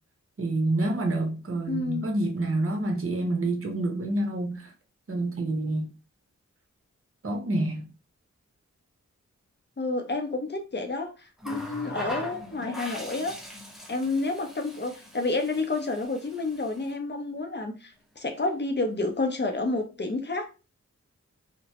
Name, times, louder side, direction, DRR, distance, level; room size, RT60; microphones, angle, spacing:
voice 1, 0.4-4.7 5.1-5.9 7.2-7.8, right 2 dB, 50° right, 0.9 m, -27 dB
voice 2, 1.7-2.1 9.8-13.3 13.9-20.5, left 3 dB, 35° left, 0.6 m, -30 dB
Water tap faucet, 11.4-17.0 18.2-18.4, equal, ahead, 0.7 m, -41 dB
2.9 x 2.1 x 2.8 m
wide cardioid pair, 60°, 29 cm